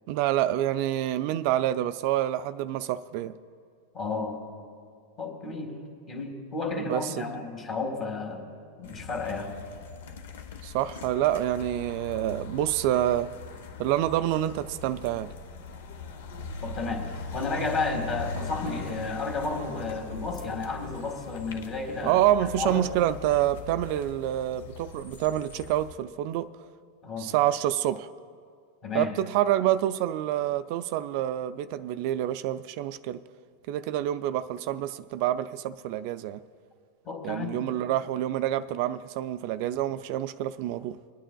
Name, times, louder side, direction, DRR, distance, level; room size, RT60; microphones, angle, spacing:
voice 1, 0.1-3.3 6.8-7.2 10.6-13.3 13.8-15.3 22.0-26.5 27.2-28.1 28.9-33.2 33.7-36.4 37.2-41.0, right 12 dB, 55° right, 12 dB, 0.3 m, -27 dB
voice 2, 3.9-4.4 5.2-5.7 6.1-8.4 8.8-9.5 16.6-17.0 17.3-22.8 27.0-27.3 28.8-29.1 37.1-37.6, left 3 dB, 30° left, 3 dB, 1.9 m, -32 dB
sound 1, 8.8-25.9, left 4 dB, 75° left, 0.8 m, -41 dB
25.5 x 8.9 x 2.3 m, 2.1 s
supercardioid pair, 130°, 0 cm